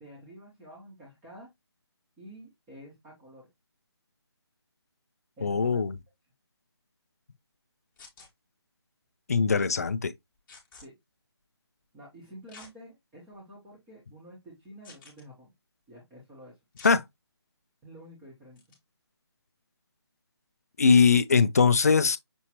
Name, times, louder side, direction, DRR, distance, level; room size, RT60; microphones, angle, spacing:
voice 1, 0.0-1.5 2.2-3.5 5.4-5.8 9.5-9.7 10.8-10.9 11.9-15.5 15.9-16.6 17.8-18.6, right 1 dB, 10° right, 1.0 m, -49 dB
voice 2, 5.4-5.9 9.3-10.1 16.8-17.0 20.8-22.2, left 5 dB, 35° left, 0.4 m, -21 dB
sound 1, 8.0-8.3 10.5-10.8 12.5-12.7 13.3-13.4 14.8-15.2 16.8-17.0 18.6-18.8, left 4 dB, 10° left, 1.2 m, -50 dB
6.1 x 2.8 x 2.9 m
figure-of-eight pair, 165°, 14 cm